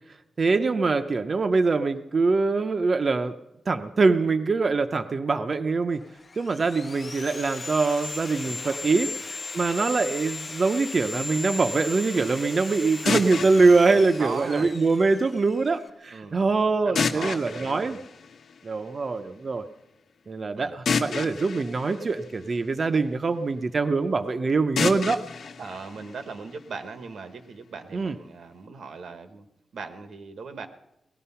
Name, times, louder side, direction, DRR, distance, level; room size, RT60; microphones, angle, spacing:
voice 1, 0.4-3.3 3.7-6.0 6.4-18.0 18.6-19.6 20.3-25.2 27.9-28.2, right 3 dB, 40° right, 7 dB, 0.6 m, -23 dB
Sawing, 6.0-15.9, left 3 dB, 35° left, 0.5 m, -37 dB
voice 2, 8.4-9.2 13.4-14.7 16.1-16.5 16.8-18.0 20.6-20.8 25.6-29.4 29.7-30.7, right 4 dB, 90° right, 8 dB, 1.3 m, -39 dB
sound 1, 13.1-15.1 17.0-18.9 20.9-23.1 24.8-26.8, left 5 dB, 80° left, 1.1 m, -31 dB
19.0 x 13.5 x 5.7 m, 0.90 s
wide cardioid pair, 165°, 0 cm